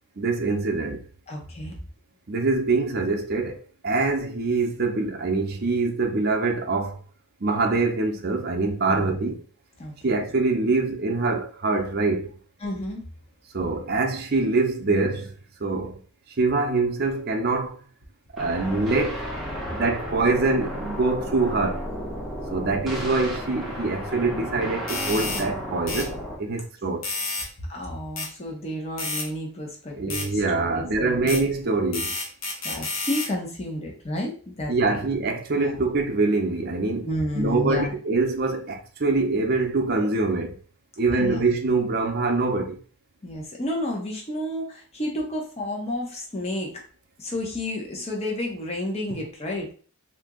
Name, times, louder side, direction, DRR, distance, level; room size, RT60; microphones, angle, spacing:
voice 1, 0.2-1.0 2.3-7.0 7.4-9.4 10.0-12.3 13.5-15.3 15.6-16.0 16.4-17.8 18.3-19.2 19.7-21.8 22.5-27.1 29.9-32.1 34.7-37.1 37.3-40.6 41.0-42.8, right 3 dB, 50° right, 0.6 m, -24 dB
voice 2, 1.3-1.8 8.8-9.1 9.8-10.2 12.6-13.0 27.7-31.3 32.6-35.1 35.6-35.8 37.0-37.9 41.2-41.4 43.2-46.8 47.2-49.7, left 1 dB, 30° left, 0.9 m, -31 dB
sound 1, 18.4-26.4, equal, ahead, 0.8 m, -33 dB
sound 2, 24.9-25.5 25.9-26.1 27.0-27.5 28.2-28.3 29.0-29.3 30.1-30.3 31.3-31.4 31.9-33.3, left 3 dB, 75° left, 0.9 m, -30 dB
2.9 x 2.6 x 3.6 m
head